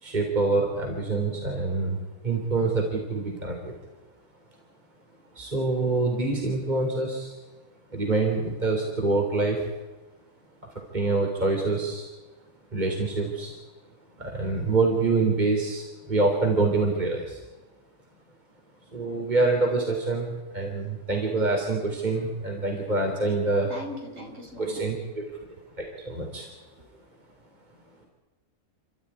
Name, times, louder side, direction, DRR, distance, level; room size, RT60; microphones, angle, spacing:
voice 1, 0.0-3.7 5.4-7.4 7.9-9.7 10.6-12.1 12.7-13.5 14.2-17.4 18.9-23.7 24.6-25.2 25.8-26.5, right 3 dB, 30° right, 1 dB, 3.7 m, -26 dB
voice 2, 23.7-24.8 26.8-26.9, left 1 dB, 55° right, 0 dB, 5.9 m, -39 dB
30.0 x 13.0 x 9.9 m, 1.2 s
omnidirectional pair, 1.6 m